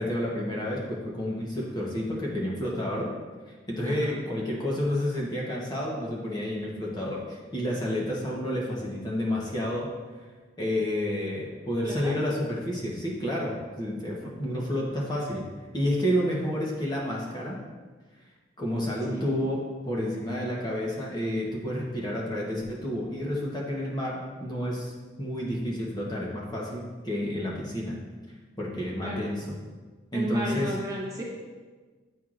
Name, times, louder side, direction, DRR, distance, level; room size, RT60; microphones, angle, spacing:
voice 1, 0.0-3.1 3.5-9.9 10.6-15.4 15.7-17.6 18.6-19.6 19.9-24.9 25.2-28.0 28.6-29.5 30.1-30.8, left 1 dB, 20° left, -4 dB, 0.9 m, -30 dB
voice 2, 3.8-4.2 11.8-12.1 19.1-19.4 29.0-29.3 30.1-31.2, right 1 dB, 15° right, -4 dB, 1.0 m, -35 dB
8.8 x 4.5 x 2.5 m, 1.4 s
head